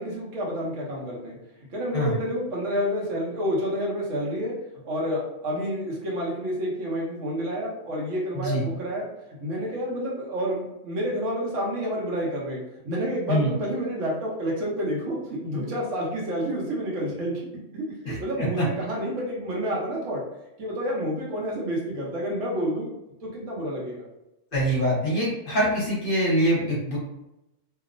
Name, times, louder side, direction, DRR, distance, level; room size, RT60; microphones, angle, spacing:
voice 1, 0.0-4.5 4.8-9.1 9.4-17.4 17.7-20.2 20.6-22.9 23.2-24.1, equal, 70° right, -4 dB, 1.1 m, -29 dB
voice 2, 18.1-18.6 24.5-27.0, equal, 50° left, -5 dB, 0.8 m, -24 dB
2.8 x 2.0 x 2.5 m, 0.93 s
omnidirectional pair, 1.4 m